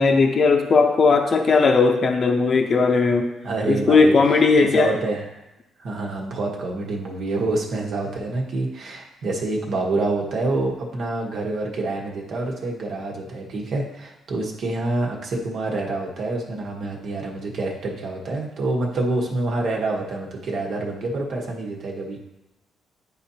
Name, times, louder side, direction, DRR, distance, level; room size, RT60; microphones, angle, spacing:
voice 1, 0.0-3.3 3.7-4.9, left 4 dB, 45° left, 3 dB, 0.7 m, -17 dB
voice 2, 3.4-4.1 4.6-5.3 5.8-22.2, right 2 dB, 65° right, 0 dB, 1.3 m, -27 dB
9.9 x 4.2 x 2.8 m, 0.96 s
cardioid pair, 90°, 0 cm